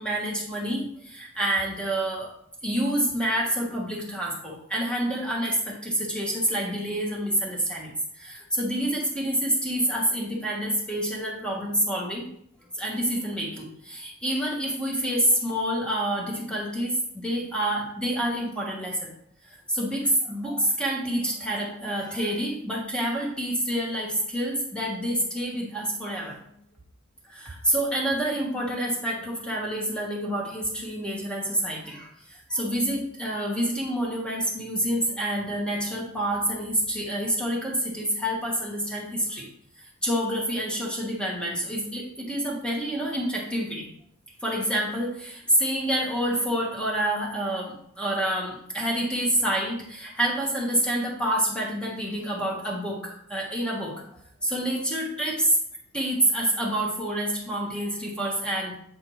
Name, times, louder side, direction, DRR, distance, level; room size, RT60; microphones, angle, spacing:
voice 1, 0.0-2.3 2.6-12.2 12.7-19.1 19.4-26.5 27.2-39.5 40.0-43.9 44.4-54.0 54.4-55.6 55.9-58.7, right 1 dB, 5° left, -2 dB, 1.3 m, -27 dB
8.5 x 4.3 x 3.1 m, 0.70 s
head